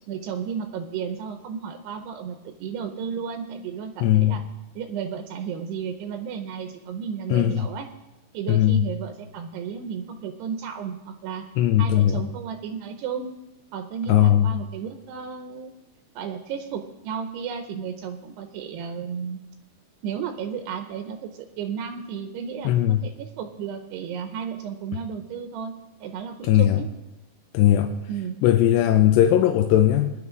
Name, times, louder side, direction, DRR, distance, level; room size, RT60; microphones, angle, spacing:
voice 1, 0.1-4.4 4.8-7.9 8.3-11.4 11.8-13.4 13.7-15.7 16.2-19.4 20.0-22.7 23.0-25.7 26.0-26.9 28.1-28.4, right 7 dB, 80° right, 6 dB, 2.8 m, -33 dB
voice 2, 4.0-4.4 7.3-7.7 8.5-8.8 11.6-12.2 14.1-14.5 22.7-23.0 26.4-26.8 27.5-27.9 28.4-30.1, left 12 dB, 85° left, 5 dB, 2.8 m, -18 dB
20.0 x 10.5 x 3.8 m, 0.97 s
omnidirectional pair, 5.0 m